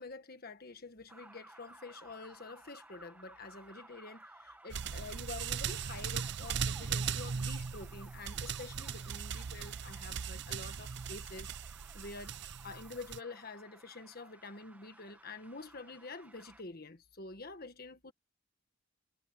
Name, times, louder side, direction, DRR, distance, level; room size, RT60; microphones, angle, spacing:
voice 1, 0.0-11.5 11.9-18.1, left 3 dB, 45° left, 1.5 m, -48 dB
sound 1, 1.1-16.6, right 1 dB, 5° right, 1.1 m, -57 dB
sound 2, 4.7-13.2, right 6 dB, 55° right, 0.6 m, -39 dB
head